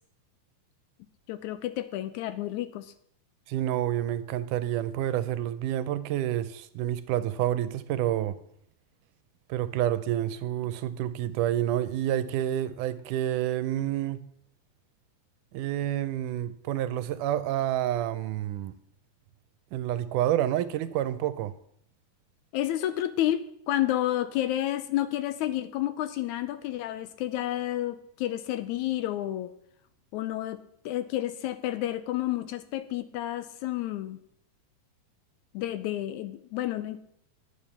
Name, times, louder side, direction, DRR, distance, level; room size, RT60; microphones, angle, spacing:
voice 1, 1.3-2.9 22.5-29.5 30.1-34.2 35.5-37.0, left 13 dB, 80° left, 1.9 m, -30 dB
voice 2, 3.5-8.4 9.5-14.2 15.5-18.7 19.7-21.5, right 12 dB, 85° right, 2.1 m, -28 dB
11.5 x 9.3 x 5.7 m
omnidirectional pair, 3.7 m